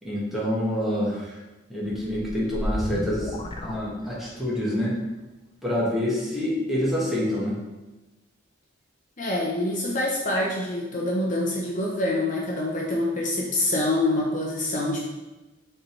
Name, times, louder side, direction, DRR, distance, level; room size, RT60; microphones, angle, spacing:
voice 1, 0.0-1.4 1.7-3.3 3.6-5.0 5.6-7.6, equal, ahead, -6 dB, 1.4 m, -27 dB
sound 1, 1.9-4.6, left 1 dB, 25° left, 0.4 m, -33 dB
voice 2, 9.2-15.0, left 1 dB, 40° left, -2 dB, 0.8 m, -26 dB
6.4 x 3.4 x 4.5 m, 1.1 s
head